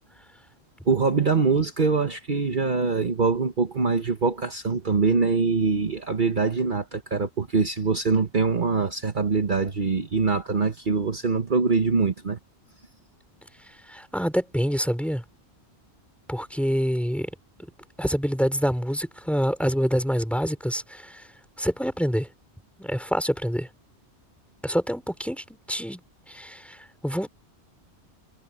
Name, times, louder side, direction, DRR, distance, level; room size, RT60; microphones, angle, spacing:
voice 1, 0.9-12.4, right 4 dB, 45° right, 1.4 m, -23 dB
voice 2, 13.9-15.2 16.3-17.3 18.0-21.2 21.6-22.3 22.8-23.7 24.6-26.0 26.3-27.3, equal, ahead, 4.9 m, -26 dB
omnidirectional pair, 1.1 m